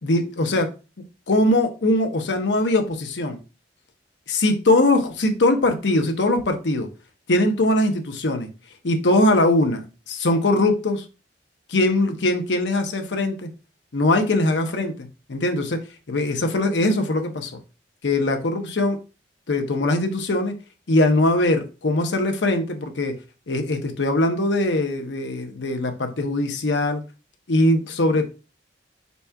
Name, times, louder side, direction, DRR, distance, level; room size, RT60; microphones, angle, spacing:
voice 1, 0.0-0.7 1.3-3.4 4.3-6.9 7.3-8.5 8.8-11.0 11.7-13.5 13.9-15.8 16.1-17.5 18.0-19.0 19.5-20.5 20.9-23.1 23.5-27.0 27.5-28.3, left 2 dB, 75° left, 0.8 m, -21 dB
4.5 x 4.1 x 2.3 m
head